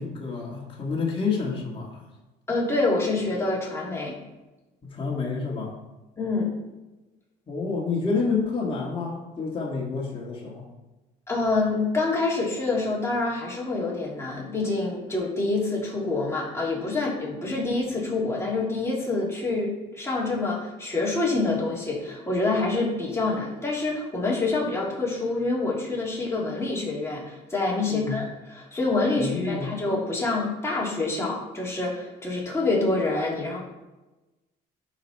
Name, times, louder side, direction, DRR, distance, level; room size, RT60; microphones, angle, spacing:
voice 1, 0.0-2.0 4.8-5.8 7.5-10.7 27.9-28.1 29.2-29.7, left 4 dB, 30° left, -3 dB, 2.2 m, -29 dB
voice 2, 2.5-4.2 6.2-6.5 11.3-33.6, left 3 dB, 15° left, -5 dB, 3.2 m, -26 dB
11.5 x 5.1 x 4.4 m, 1.1 s
cardioid pair, 110°, 17 cm